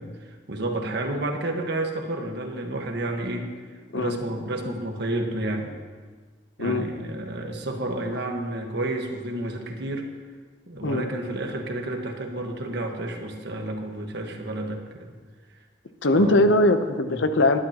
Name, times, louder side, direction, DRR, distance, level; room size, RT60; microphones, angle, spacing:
voice 1, 0.0-3.5 3.9-5.7 6.6-10.1 10.7-15.1 16.1-16.4 17.1-17.2, right 1 dB, 65° right, 3 dB, 1.5 m, -30 dB
voice 2, 16.0-17.6, left 1 dB, 70° left, 9 dB, 0.8 m, -20 dB
19.0 x 11.5 x 3.0 m, 1.5 s
head